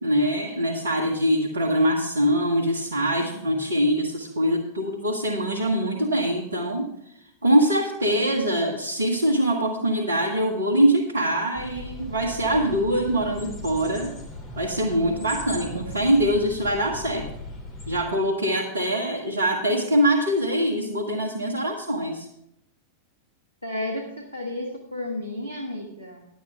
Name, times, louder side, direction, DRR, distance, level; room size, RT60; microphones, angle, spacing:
voice 1, 0.0-6.9 7.4-14.1 14.5-17.3 17.9-22.3, equal, 75° right, -2 dB, 1.2 m, -23 dB
sound 1, 11.5-18.0, left 2 dB, 25° left, 2.6 m, -38 dB
voice 2, 23.6-26.3, left 1 dB, 85° left, 0 dB, 1.4 m, -32 dB
11.0 x 8.6 x 4.7 m, 0.78 s
figure-of-eight pair, 90°, 0 cm